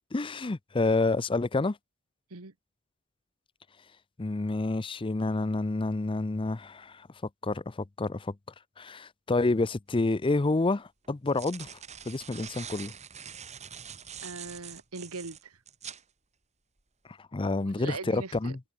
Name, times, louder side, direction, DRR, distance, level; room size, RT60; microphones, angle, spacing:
voice 1, 0.1-1.8 4.2-7.1 7.4-8.3 8.8-11.7 12.1-12.9 17.2-18.6, left 2 dB, 25° left, 0.5 m, -28 dB
sound 1, 10.0-10.1 11.0-16.0, right 8 dB, 30° right, 1.9 m, -44 dB
voice 2, 14.2-15.6 17.6-18.6, right 3 dB, 90° right, 1.8 m, -40 dB
head